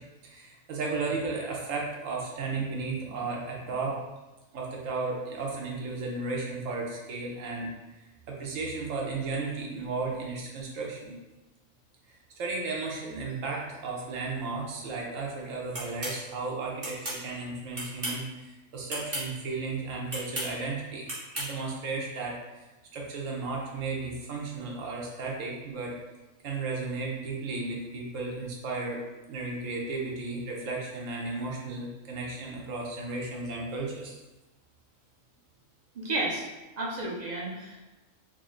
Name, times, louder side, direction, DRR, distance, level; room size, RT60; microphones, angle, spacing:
voice 1, 0.0-4.0 4.5-8.0 8.3-11.1 12.4-21.1 21.4-22.6 22.9-25.9 26.4-29.0 29.3-34.2, right 3 dB, 70° right, -2 dB, 1.1 m, -34 dB
sound 1, 15.7-16.2 16.8-17.2 17.7-18.3 18.9-19.3 20.1-20.5 21.1-21.5, right 1 dB, 25° right, 1.0 m, -34 dB
voice 2, 35.9-36.4 36.8-37.8, right 2 dB, 45° right, -3 dB, 0.6 m, -32 dB
3.8 x 2.1 x 3.6 m, 1.1 s
omnidirectional pair, 1.4 m